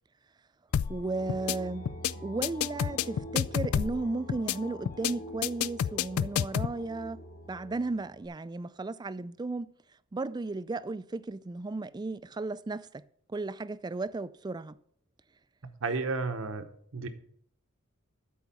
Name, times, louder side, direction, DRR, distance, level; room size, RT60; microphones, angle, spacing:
sound 1, 0.7-1.0 1.3-1.6 1.9-2.1 2.4-4.0 4.3-4.6 4.9-5.1 5.4-6.7, left 9 dB, 75° left, 0.3 m, -28 dB
sound 2, 0.7-8.3, left 1 dB, 45° left, 1.6 m, -45 dB
voice 1, 0.9-1.9 2.2-9.7 10.1-13.0 13.3-14.8, right 3 dB, 20° right, 0.3 m, -35 dB
voice 2, 15.8-16.7 16.9-17.1, right 4 dB, 65° right, 1.0 m, -31 dB
12.0 x 4.7 x 6.9 m
head